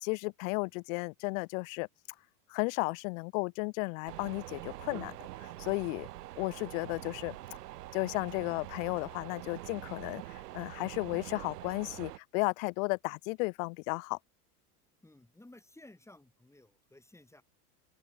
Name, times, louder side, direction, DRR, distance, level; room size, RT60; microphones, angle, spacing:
voice 1, 0.0-1.9 2.5-5.1 5.4-6.1 6.4-7.4 7.9-14.2, left 32 dB, 60° left, 0.8 m, -34 dB
sound 1, 4.1-12.2, right 15 dB, 85° right, 1.1 m, -45 dB
voice 2, 15.0-17.4, left 1 dB, 5° left, 2.5 m, -56 dB
open air
hypercardioid pair, 100°, 46 cm